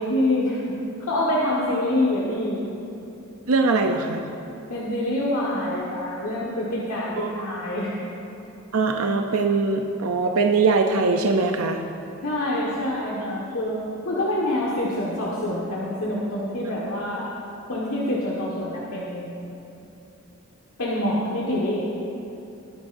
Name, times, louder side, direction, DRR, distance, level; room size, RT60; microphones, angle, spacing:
voice 1, 0.0-2.6 4.7-8.0 12.2-13.8 14.0-17.3 17.7-19.3 20.8-21.8, left 1 dB, 80° left, -6 dB, 1.6 m, -26 dB
voice 2, 3.5-4.2 7.2-7.5 8.7-11.8, right 4 dB, 80° right, 4 dB, 0.6 m, -22 dB
21.0 x 9.8 x 2.6 m, 2.8 s
head